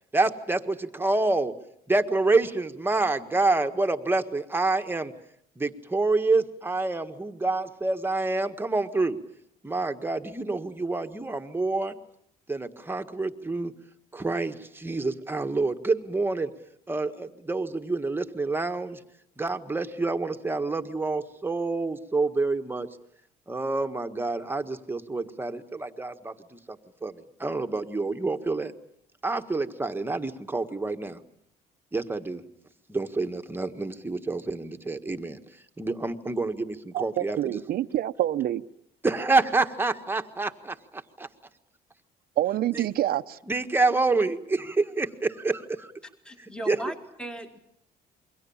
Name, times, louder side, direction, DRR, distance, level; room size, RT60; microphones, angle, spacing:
voice 1, 0.1-1.5 1.9-5.1 5.6-9.2 9.6-12.0 12.5-13.7 14.1-16.5 16.9-19.0 19.4-22.9 23.5-26.6 27.0-28.7 29.2-31.2 31.9-32.4 32.9-35.4 35.8-37.6 39.0-41.3 42.7-42.8 43.5-45.9 46.7-46.8, right 3 dB, 15° right, 6 dB, 1.7 m, -27 dB
voice 2, 36.9-38.6 42.4-43.4, right 13 dB, 65° right, 13 dB, 1.0 m, -27 dB
voice 3, 46.2-47.6, right 1 dB, 5° left, 5 dB, 2.1 m, -37 dB
28.0 x 23.0 x 7.3 m, 0.72 s
cardioid pair, 110°, 17 cm